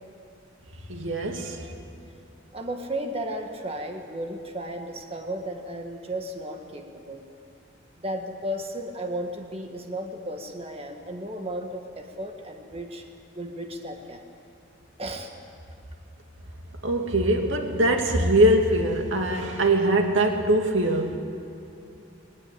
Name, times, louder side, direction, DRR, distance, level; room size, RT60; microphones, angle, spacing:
voice 1, 0.9-1.7 16.8-21.2, right 1 dB, 90° right, 3 dB, 2.4 m, -22 dB
voice 2, 2.5-7.2 8.0-13.0 13.3-14.2 15.0-15.3, right 1 dB, 30° right, 3 dB, 1.7 m, -34 dB
21.0 x 19.5 x 8.6 m, 2.8 s
head